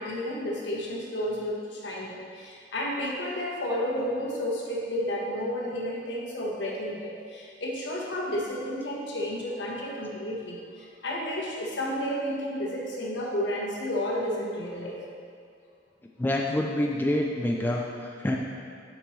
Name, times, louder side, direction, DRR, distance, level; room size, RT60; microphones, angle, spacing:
voice 1, 0.0-15.0, equal, 80° left, -3 dB, 1.1 m, -31 dB
voice 2, 16.2-18.4, left 1 dB, 10° left, 0 dB, 0.3 m, -27 dB
7.0 x 5.3 x 3.1 m, 2.3 s
head